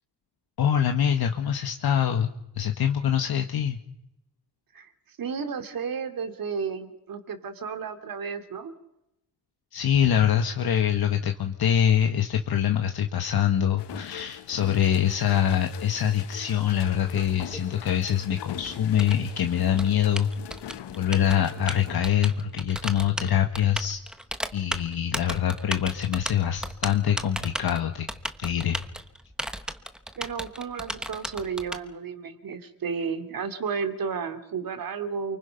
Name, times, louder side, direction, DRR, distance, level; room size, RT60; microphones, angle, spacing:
voice 1, 0.6-3.8 9.7-20.7 21.0-24.0 24.5-28.1 28.4-28.8, left 9 dB, 65° left, 5 dB, 1.6 m, -24 dB
voice 2, 4.7-8.7 30.2-35.4, right 6 dB, 55° right, 8 dB, 2.7 m, -33 dB
sound 1, 13.8-22.0, left 11 dB, 80° left, 1.1 m, -42 dB
Typing, 17.0-31.8, equal, ahead, 1.1 m, -35 dB
29.0 x 24.5 x 5.8 m, 0.83 s
wide cardioid pair, 175°, 41 cm